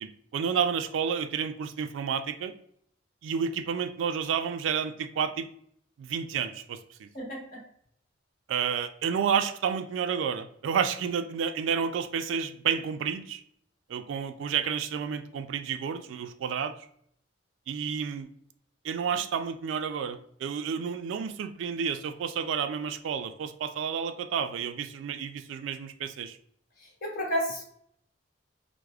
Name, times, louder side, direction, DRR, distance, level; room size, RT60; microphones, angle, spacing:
voice 1, 0.0-2.5 3.2-5.5 6.0-7.1 8.5-13.4 13.9-16.7 17.7-18.3 18.8-26.4, right 7 dB, 80° right, 9 dB, 0.3 m, -30 dB
voice 2, 7.1-7.6 27.0-27.6, equal, 50° left, -3 dB, 1.1 m, -31 dB
4.7 x 2.0 x 2.3 m, 0.68 s
head